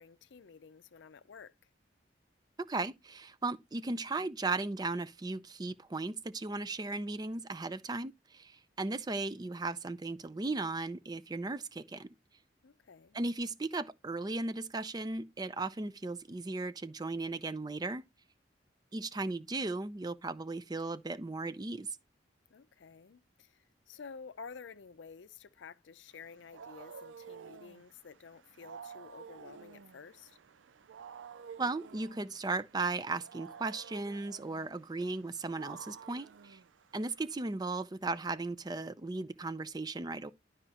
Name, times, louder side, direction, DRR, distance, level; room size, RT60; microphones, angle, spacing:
voice 1, 0.0-1.5 12.6-13.2 22.5-30.4, left 5 dB, 80° left, 0.5 m, -51 dB
voice 2, 2.6-12.1 13.1-18.0 18.9-21.9 31.6-36.6 36.9-40.3, right 3 dB, 20° right, 0.4 m, -36 dB
Wild animals, 26.1-37.3, right 6 dB, 90° right, 0.4 m, -52 dB
12.0 x 5.0 x 2.9 m
head